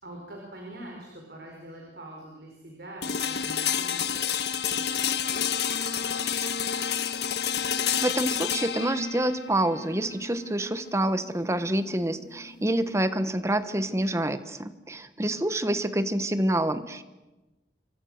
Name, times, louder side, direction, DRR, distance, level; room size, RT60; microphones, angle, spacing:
voice 1, 0.0-4.2 4.7-6.6 15.2-15.4, right 1 dB, 60° right, 0 dB, 5.1 m, -45 dB
sound 1, 3.0-12.9, left 8 dB, 70° left, 1.3 m, -30 dB
voice 2, 8.0-17.0, right 1 dB, 15° right, 12 dB, 1.1 m, -27 dB
27.0 x 24.0 x 6.6 m, 1.1 s
head